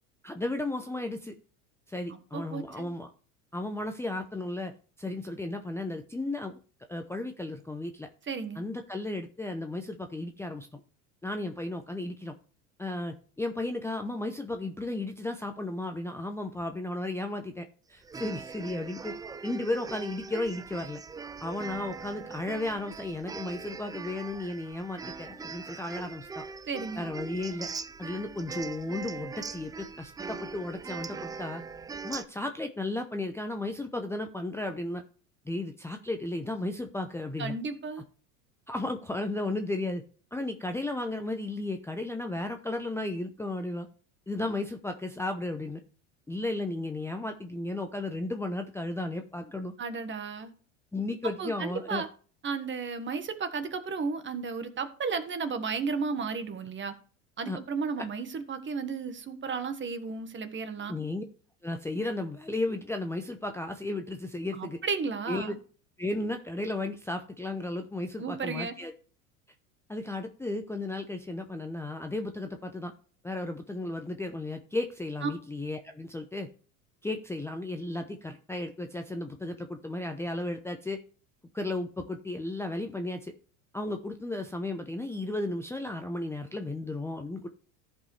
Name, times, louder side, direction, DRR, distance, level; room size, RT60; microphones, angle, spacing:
voice 1, 0.2-1.3 1.9-3.1 3.5-4.7 5.0-6.6 6.9-8.1 8.6-10.8 11.2-12.3 12.8-19.2 19.4-21.0 21.4-26.4 27.0-27.7 28.0-31.6 32.0-35.0 35.5-37.5 38.7-40.0 40.3-43.9 44.3-45.8 46.3-49.7 50.9-52.0 57.5-57.6 60.9-61.2 61.6-64.8 65.3-65.6 66.0-68.9 69.9-72.9 73.2-76.5 77.0-81.0 81.5-83.3 83.7-87.5, left 2 dB, 5° left, 5 dB, 0.7 m, -34 dB
voice 2, 2.1-2.9 8.3-8.6 26.7-27.1 37.4-38.0 49.8-50.5 51.4-52.1 52.4-56.9 57.4-60.9 64.5-65.6 68.2-68.8 75.2-75.3, right 5 dB, 30° right, 9 dB, 1.5 m, -33 dB
sound 1, 18.0-32.2, right 5 dB, 10° right, 0.3 m, -41 dB
14.5 x 5.3 x 3.3 m, 0.41 s
hypercardioid pair, 95°, 41 cm